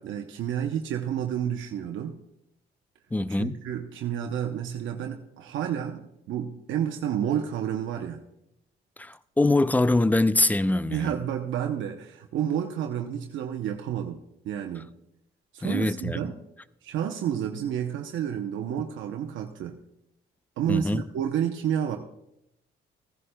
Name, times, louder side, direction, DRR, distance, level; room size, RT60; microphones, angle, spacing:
voice 1, 0.0-2.2 3.3-8.2 10.9-14.9 15.5-16.4 16.8-19.8 20.6-22.0, right 9 dB, 80° right, 0.7 m, -30 dB
voice 2, 3.1-3.6 9.0-11.1 15.6-16.3 20.7-21.0, left 2 dB, 10° left, 0.3 m, -24 dB
15.0 x 11.0 x 2.2 m
cardioid pair, 90°, 20 cm